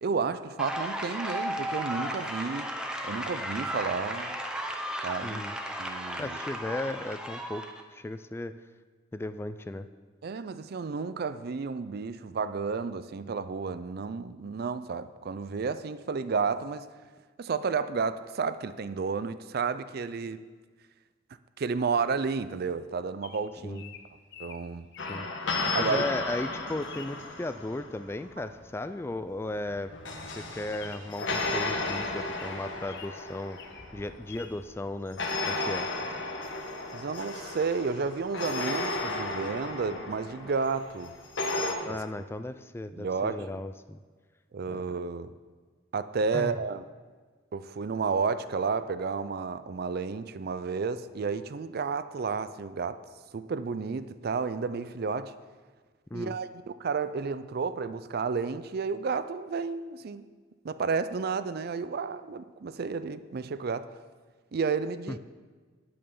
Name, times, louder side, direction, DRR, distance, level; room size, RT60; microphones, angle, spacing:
voice 1, 0.0-2.7 3.0-4.4 5.0-5.4 5.8-6.4 10.2-16.9 17.4-20.4 21.6-23.8 24.4-24.9 25.7-26.0 36.9-41.2 41.9-42.0 43.0-43.6 44.5-45.3 45.9-46.8 47.5-53.0 53.3-55.3 56.1-60.2 60.6-63.9 64.5-65.2, right 5 dB, 55° right, 13 dB, 0.4 m, -31 dB
sound 1, 0.6-7.8, equal, 5° right, 0.8 m, -35 dB
voice 2, 5.2-5.6 6.2-7.6 7.9-8.5 9.1-9.9 23.6-23.9 25.1-25.3 25.8-29.9 30.3-33.6 33.9-35.9 41.8-44.0 44.7-44.9 46.3-46.5 56.1-56.4 65.1-65.2, left 2 dB, 15° left, 11 dB, 0.3 m, -36 dB
Bird vocalization bird call bird song, 23.2-25.8 26.2-26.6 26.9-27.2 28.6-28.9 29.1-29.2 29.5-29.7 30.1-30.2 30.7-33.2 33.5-33.9 34.3-34.5, left 7 dB, 60° left, 0.8 m, -48 dB
sound 2, 25.0-28.2 29.7-34.6 35.2-41.7, left 2 dB, 80° left, 1.4 m, -34 dB
9.0 x 8.6 x 5.5 m, 1.4 s
head